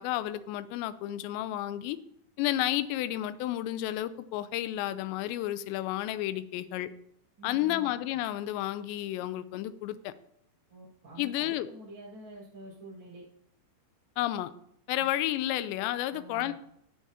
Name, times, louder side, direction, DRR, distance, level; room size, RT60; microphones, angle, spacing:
voice 1, 0.0-2.0 2.4-6.9 7.4-10.1 11.2-11.7 14.2-14.5 14.9-16.5, left 14 dB, 85° left, 13 dB, 2.8 m, -31 dB
voice 2, 7.4-7.9 10.7-13.2 15.0-15.1 16.1-16.5, right 2 dB, 10° right, -7 dB, 4.1 m, -47 dB
14.0 x 8.3 x 2.8 m, 0.75 s
omnidirectional pair, 5.2 m